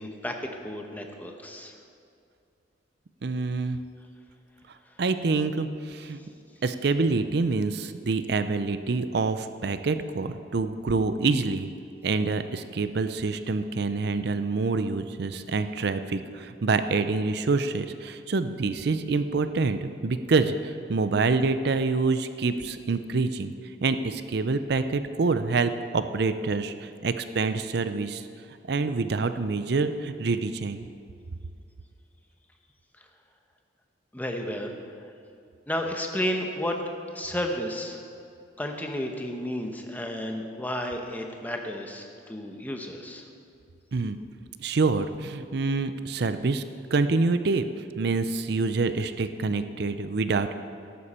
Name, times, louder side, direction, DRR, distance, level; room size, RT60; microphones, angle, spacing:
voice 1, 0.0-1.7 34.1-35.1 35.7-36.8 37.1-38.0 38.6-43.3, equal, 10° left, 3 dB, 1.0 m, -32 dB
voice 2, 3.2-3.8 5.0-6.2 6.6-11.7 12.0-23.5 23.8-28.3 28.7-30.9 43.9-44.2 44.6-46.6 46.9-47.6 48.0-50.5, right 3 dB, 60° right, 10 dB, 0.5 m, -26 dB
13.5 x 11.0 x 4.3 m, 2.5 s
head